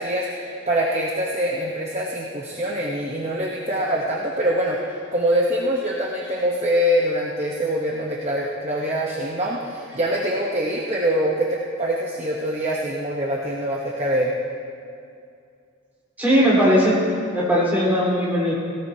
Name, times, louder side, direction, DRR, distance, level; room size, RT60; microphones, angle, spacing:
voice 1, 0.0-14.3, equal, 30° right, -4 dB, 1.0 m, -24 dB
voice 2, 16.2-17.0 17.3-18.5, equal, 10° right, -8 dB, 3.9 m, -18 dB
18.0 x 17.5 x 2.8 m, 2.4 s
head